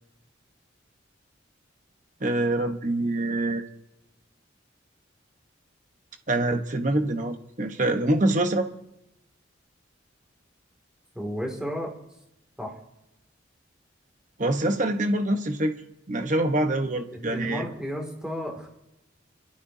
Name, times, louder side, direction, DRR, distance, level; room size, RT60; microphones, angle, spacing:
voice 1, 2.2-3.6 6.3-8.7 14.4-15.8 16.1-17.6, right 1 dB, 40° right, 5 dB, 1.1 m, -25 dB
voice 2, 11.1-11.9 12.6-12.8 17.1-18.7, equal, 5° right, 1 dB, 2.4 m, -33 dB
27.0 x 13.0 x 2.8 m, 0.87 s
head